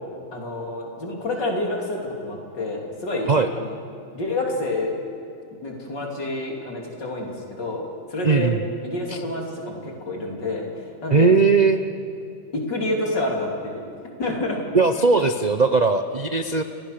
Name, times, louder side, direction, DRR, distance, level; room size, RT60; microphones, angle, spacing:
voice 1, 0.3-3.7 4.1-4.9 5.6-8.5 8.8-11.3 12.5-13.8 14.2-14.6, left 2 dB, 85° left, 0 dB, 3.8 m, -28 dB
voice 2, 8.2-8.6 9.1-9.2 11.1-11.8 14.7-16.6, right 4 dB, 70° right, 8 dB, 0.4 m, -18 dB
29.0 x 15.5 x 6.6 m, 2.6 s
omnidirectional pair, 1.9 m